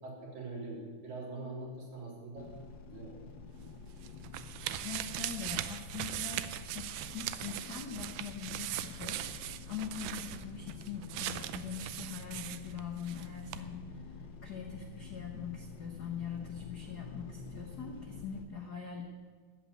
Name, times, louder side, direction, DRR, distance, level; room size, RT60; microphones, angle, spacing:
voice 1, 0.0-2.5 2.9-3.2, right 2 dB, 70° right, -3 dB, 5.0 m, -43 dB
sound 1, 2.4-18.5, left 5 dB, 65° left, 1.1 m, -48 dB
sound 2, 3.6-13.3 13.5-13.6, right 13 dB, 85° right, 2.2 m, -40 dB
voice 2, 4.8-6.8 7.1-19.4, left 7 dB, 85° left, 3 dB, 0.8 m, -43 dB
13.5 x 8.4 x 9.1 m, 1.5 s
omnidirectional pair, 3.5 m